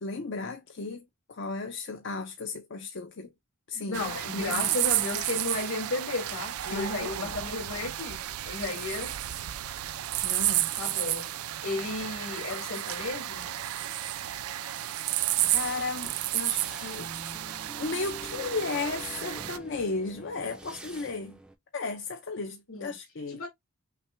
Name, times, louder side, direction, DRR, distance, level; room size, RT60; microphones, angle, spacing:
voice 1, 0.0-3.3 3.7-4.8 6.7-7.3 10.2-10.7 15.5-17.1 17.8-21.4 21.7-23.4, left 3 dB, 55° left, 0.6 m, -35 dB
voice 2, 3.7-8.2 8.5-9.2 10.8-11.3 11.6-13.5 22.7-22.9 23.3-23.5, left 3 dB, 75° left, 1.9 m, -34 dB
sound 1, 3.9-19.6, right 14 dB, 85° right, 0.4 m, -32 dB
sound 2, 15.4-21.6, right 1 dB, 5° right, 0.4 m, -47 dB
5.8 x 2.2 x 3.3 m
head